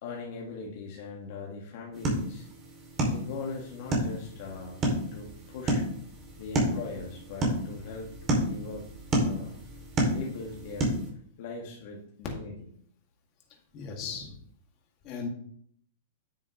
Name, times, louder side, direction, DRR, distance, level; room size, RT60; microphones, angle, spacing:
voice 1, 0.0-2.5 3.1-4.8 5.1-5.8 6.4-8.1 8.4-8.9 9.2-9.6 10.1-10.9 11.4-12.7, left 4 dB, 55° left, -2 dB, 1.7 m, -40 dB
sound 1, 1.9-11.1, right 1 dB, 25° right, 2.6 m, -31 dB
voice 2, 13.7-14.3 15.0-15.3, left 5 dB, 35° left, 0 dB, 2.3 m, -36 dB
9.7 x 6.9 x 3.1 m, 0.62 s
hypercardioid pair, 140°, 0 cm